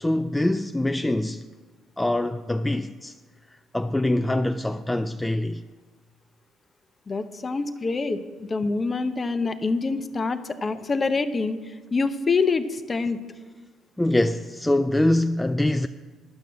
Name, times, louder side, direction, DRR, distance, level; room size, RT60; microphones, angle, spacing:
voice 1, 0.0-1.5 2.0-3.2 3.5-5.6 14.0-15.9, left 1 dB, 10° left, 0.3 m, -24 dB
voice 2, 7.1-13.2, left 4 dB, 35° left, 0.7 m, -26 dB
10.5 x 6.0 x 7.0 m
supercardioid pair, 70°, 0 cm